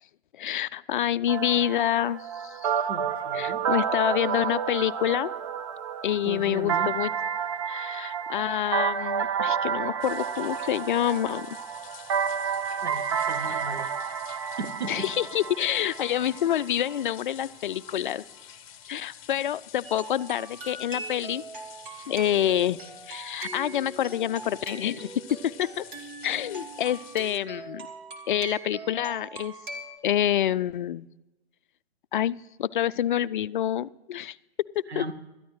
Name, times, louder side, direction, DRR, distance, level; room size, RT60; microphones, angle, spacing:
voice 1, 0.4-2.7 3.3-5.3 6.0-7.1 7.7-11.5 13.5-13.6 14.9-18.2 18.9-21.4 22.1-22.8 23.1-25.1 25.4-25.8 26.2-27.8 28.3-29.5 30.0-31.1 32.1-34.4 34.8-35.0, left 11 dB, 50° left, 16 dB, 0.4 m, -27 dB
sound 1, 1.3-17.0, right 7 dB, 30° right, 0.4 m, -30 dB
voice 2, 2.9-3.6 6.2-6.9 12.8-13.9 14.4-15.1 34.9-35.1, right 2 dB, 90° right, 7 dB, 1.4 m, -36 dB
sound 2, 10.0-27.4, left 11 dB, 35° left, 0.9 m, -49 dB
sound 3, 19.8-30.0, right 2 dB, 50° right, 2.5 m, -41 dB
20.0 x 13.0 x 3.2 m, 1.0 s
figure-of-eight pair, 130°, 32 cm